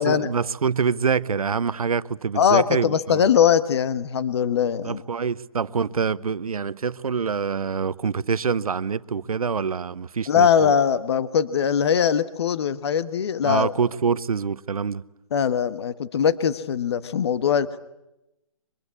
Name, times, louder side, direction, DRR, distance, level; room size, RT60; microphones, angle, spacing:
voice 1, 0.0-3.3 4.8-10.7 13.4-15.0, right 6 dB, 90° right, 0.8 m, -25 dB
voice 2, 2.3-5.0 10.3-13.7 15.3-17.8, left 8 dB, 50° left, 1.3 m, -21 dB
24.0 x 23.0 x 8.5 m
hypercardioid pair, 160°, 18 cm